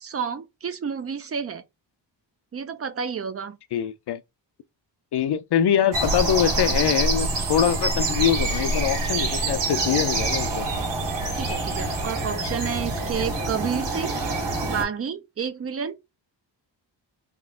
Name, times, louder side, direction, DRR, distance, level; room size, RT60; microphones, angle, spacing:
voice 1, 0.0-1.6 2.5-3.6 11.3-14.1 14.6-16.0, right 6 dB, 35° right, 0.5 m, -30 dB
voice 2, 3.7-4.2 5.1-10.7, left 9 dB, 65° left, 0.5 m, -23 dB
sound 1, 5.9-14.8, right 2 dB, 75° right, 1.9 m, -26 dB
3.6 x 2.4 x 3.6 m
wide cardioid pair, 145°, 43 cm